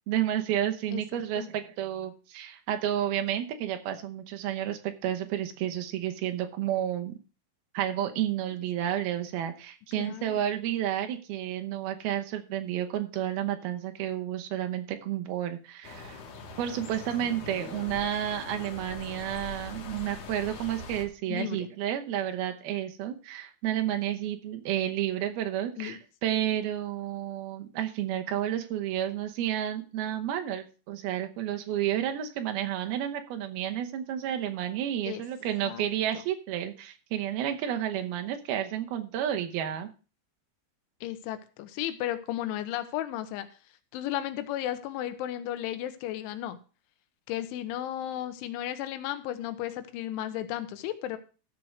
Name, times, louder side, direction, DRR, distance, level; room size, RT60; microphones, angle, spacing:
voice 1, 0.1-7.2 7.7-16.2 16.6-39.9, right 11 dB, 75° right, 6 dB, 2.4 m, -31 dB
voice 2, 10.0-10.4 21.3-21.7 25.8-26.0 35.1-35.2 35.6-35.9 41.0-43.5 43.9-46.6 47.3-51.2, left 12 dB, 85° left, 10 dB, 3.3 m, -34 dB
sound 1, 15.8-21.0, left 3 dB, 55° left, 2.4 m, -42 dB
13.5 x 4.6 x 6.4 m, 0.35 s
omnidirectional pair, 5.4 m